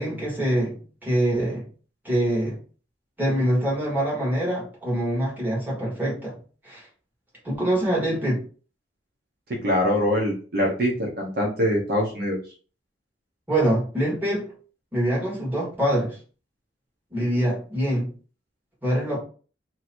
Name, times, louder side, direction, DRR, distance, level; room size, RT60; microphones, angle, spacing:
voice 1, 0.0-1.6 2.0-2.6 3.2-6.3 6.6-6.8 7.4-8.4 13.5-14.4 14.9-16.2 17.1-18.1 18.8-19.2, right 1 dB, 10° right, -6 dB, 1.6 m, -24 dB
voice 2, 9.5-12.4, equal, 55° right, -1 dB, 0.9 m, -23 dB
3.0 x 2.6 x 4.3 m, 0.39 s
head